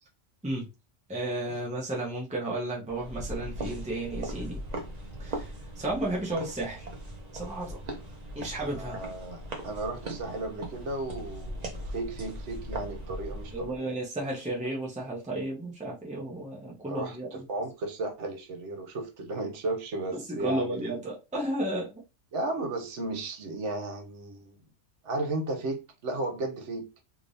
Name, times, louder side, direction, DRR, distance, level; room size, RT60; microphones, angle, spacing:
voice 1, 1.1-4.6 5.2-6.9 7.3-7.8 8.3-9.0 13.5-17.4 20.1-22.0, right 1 dB, 5° right, 0.8 m, -33 dB
sound 1, 2.9-13.8, right 1 dB, 40° right, 0.8 m, -39 dB
voice 2, 8.6-13.9 16.9-21.0 22.3-24.6 25.0-26.9, right 2 dB, 75° right, 1.1 m, -34 dB
3.3 x 3.0 x 2.6 m
omnidirectional pair, 1.2 m